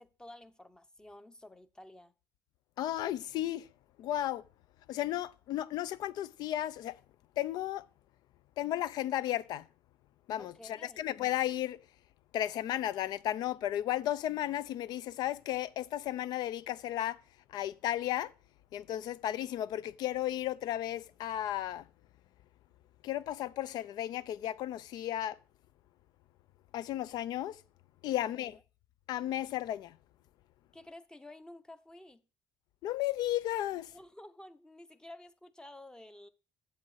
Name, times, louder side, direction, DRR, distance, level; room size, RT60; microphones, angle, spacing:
voice 1, 0.0-2.1 10.4-11.1 28.3-28.6 30.7-32.2 33.9-36.3, left 1 dB, 10° left, 0.8 m, -52 dB
voice 2, 2.8-3.7 4.0-4.4 4.9-7.0 7.4-7.9 8.6-9.7 10.3-11.8 12.3-17.2 17.5-18.3 18.7-21.9 23.0-25.4 26.7-27.6 28.0-28.6 29.1-30.0 32.8-33.9, left 13 dB, 70° left, 0.5 m, -34 dB
7.7 x 7.0 x 4.1 m
supercardioid pair, 85°, 7 cm